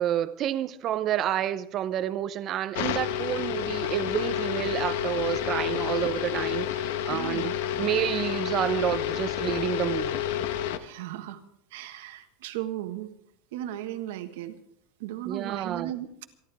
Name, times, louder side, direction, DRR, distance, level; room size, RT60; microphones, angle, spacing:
voice 1, 0.0-7.5 7.8-10.2 15.3-15.9, right 11 dB, 30° right, 0.7 m, -29 dB
sound 1, 2.7-10.8, left 10 dB, 70° left, 1.1 m, -29 dB
voice 2, 7.1-7.5 10.8-11.4 11.7-13.1 13.5-14.6 15.0-16.3, right 13 dB, 70° right, 1.5 m, -36 dB
27.5 x 11.5 x 3.5 m
supercardioid pair, 170°, 0 cm